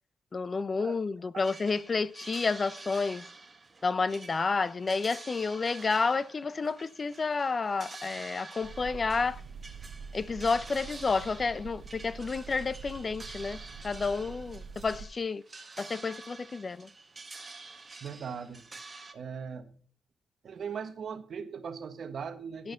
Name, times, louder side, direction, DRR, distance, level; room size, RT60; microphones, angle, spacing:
voice 1, 0.3-3.3 3.8-9.4 10.1-13.6 13.8-15.4 15.8-16.9 22.6-22.7, left 4 dB, 40° left, 0.5 m, -30 dB
sound 1, 1.4-19.1, right 3 dB, 30° right, 1.6 m, -48 dB
sound 2, 8.6-15.1, right 5 dB, 85° right, 0.9 m, -45 dB
voice 2, 18.0-18.7 19.1-19.8 20.4-22.7, right 6 dB, 65° right, 1.4 m, -39 dB
11.0 x 6.2 x 5.7 m
cardioid pair, 65°, 0 cm